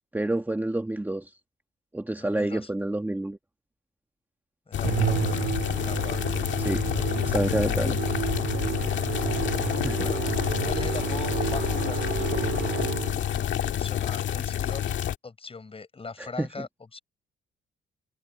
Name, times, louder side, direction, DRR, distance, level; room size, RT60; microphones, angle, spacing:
voice 1, 0.1-1.3 1.9-3.4 6.6-6.8 7.2-8.0 9.7-10.1 16.2-16.7, right 1 dB, 10° right, 1.6 m, -29 dB
voice 2, 2.2-2.7 4.7-6.3 10.0-10.2 10.6-12.3 13.7-14.9 15.2-17.0, left 4 dB, 30° left, 6.9 m, -40 dB
sound 1, 4.7-15.2, left 10 dB, 70° left, 1.8 m, -28 dB
Musical instrument, 4.8-13.4, right 11 dB, 75° right, 1.9 m, -31 dB
cardioid pair, 90°, 20 cm